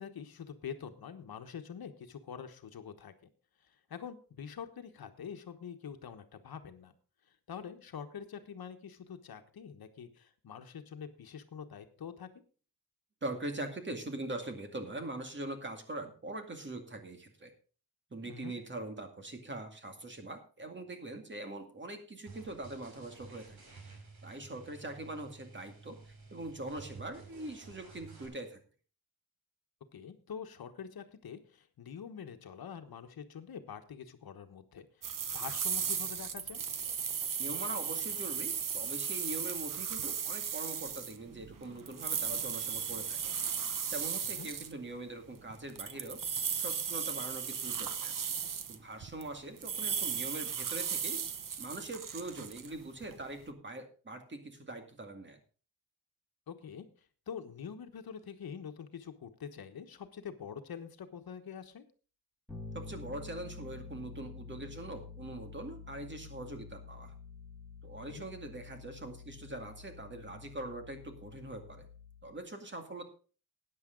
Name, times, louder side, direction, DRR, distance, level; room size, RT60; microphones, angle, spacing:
voice 1, 0.0-3.1 3.9-6.9 7.5-12.3 18.2-18.5 29.9-35.1 35.3-36.6 44.4-44.5 56.5-56.8 57.3-61.8 68.0-68.2, left 7 dB, 75° left, 8 dB, 1.3 m, -45 dB
voice 2, 13.2-17.5 18.1-23.6 24.2-28.6 37.4-43.4 43.9-46.2 46.5-48.1 48.7-51.2 51.6-55.4 62.7-67.1 67.8-71.9 72.2-73.0, right 2 dB, 30° right, 5 dB, 2.2 m, -42 dB
sound 1, 22.3-28.3, right 4 dB, 80° right, 4.5 m, -53 dB
sound 2, 35.0-44.7 45.5-49.3 49.6-53.4, right 7 dB, 60° right, 1.0 m, -36 dB
Bass guitar, 62.5-72.4, left 4 dB, ahead, 5.1 m, -49 dB
14.0 x 9.7 x 3.9 m, 0.37 s
wide cardioid pair, 120°, 37 cm